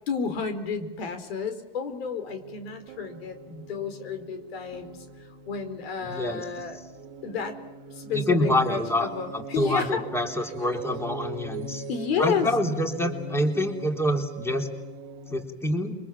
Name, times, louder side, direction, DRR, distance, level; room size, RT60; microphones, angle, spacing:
voice 1, 0.1-5.0 5.5-6.8 7.2-7.6 8.0-10.0 11.9-12.5, left 6 dB, 85° left, 9 dB, 4.3 m, -31 dB
sound 1, 2.3-15.4, right 1 dB, 70° right, 1.7 m, -41 dB
voice 2, 6.0-6.4 8.1-9.1 9.3-11.8 12.2-14.7 15.3-16.0, left 1 dB, 10° left, 4 dB, 3.6 m, -26 dB
27.5 x 24.0 x 7.5 m, 1.1 s
supercardioid pair, 125°, 30 cm